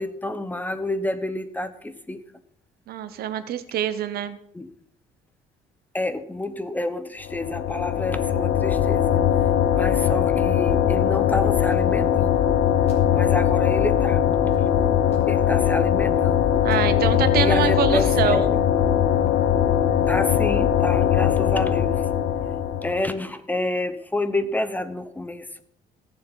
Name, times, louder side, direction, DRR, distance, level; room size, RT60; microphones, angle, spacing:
voice 1, 0.0-2.2 4.5-4.7 5.9-9.1 9.7-12.4 13.1-14.2 15.3-16.6 17.4-18.6 20.1-22.1 22.8-25.6, left 2 dB, 10° left, 11 dB, 0.8 m, -29 dB
voice 2, 2.9-4.4 16.6-18.5, right 9 dB, 65° right, 12 dB, 1.0 m, -25 dB
sound 1, 7.2-23.1, left 9 dB, 70° left, 0.9 m, -20 dB
sound 2, 10.3-10.8 11.0-13.0 13.4-13.9 14.5-15.2 15.6-15.7 16.1-16.2 16.5-17.2 17.4-18.0 18.3-18.7, left 2 dB, 40° left, 3.6 m, -47 dB
17.5 x 7.0 x 4.1 m, 0.68 s
cardioid pair, 110°, 17 cm